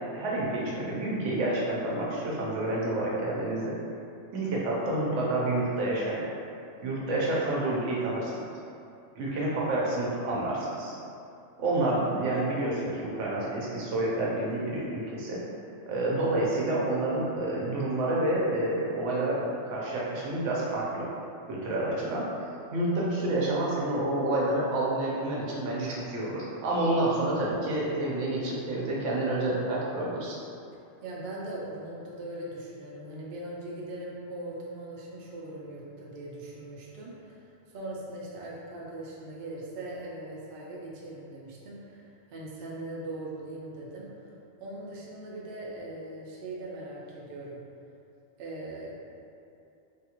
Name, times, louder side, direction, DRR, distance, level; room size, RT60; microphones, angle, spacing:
voice 1, 0.1-3.8 4.3-6.2 6.8-8.4 9.2-11.0 11.6-15.4 15.9-21.1 21.5-22.3 22.7-30.4, right 1 dB, 80° right, -5 dB, 1.0 m, -29 dB
voice 2, 31.0-44.3 44.6-47.6 48.4-49.0, right 1 dB, 60° right, -5 dB, 0.7 m, -40 dB
3.3 x 2.3 x 2.9 m, 2.7 s
omnidirectional pair, 1.3 m